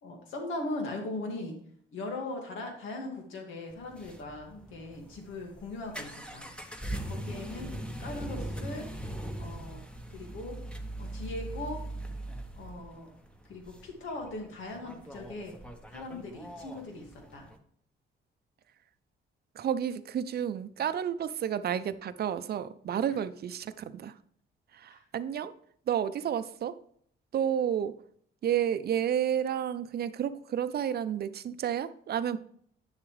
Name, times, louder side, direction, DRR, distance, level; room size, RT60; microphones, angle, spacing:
voice 1, 0.0-1.6 1.9-6.5 7.1-7.7 8.0-8.9 9.4-9.8 10.1-10.6 11.0-11.9 12.6-13.1 13.5-15.5 15.9-17.5 24.9-25.0, left 2 dB, 80° left, 2 dB, 2.1 m, -39 dB
sound 1, 3.7-17.6, right 1 dB, 5° left, 1.1 m, -41 dB
voice 2, 19.6-24.1 24.8-25.5 25.9-26.7 27.3-27.9 28.4-32.4, right 9 dB, 55° right, 12 dB, 0.6 m, -31 dB
9.7 x 7.0 x 3.3 m, 0.63 s
cardioid pair, 90°, 20 cm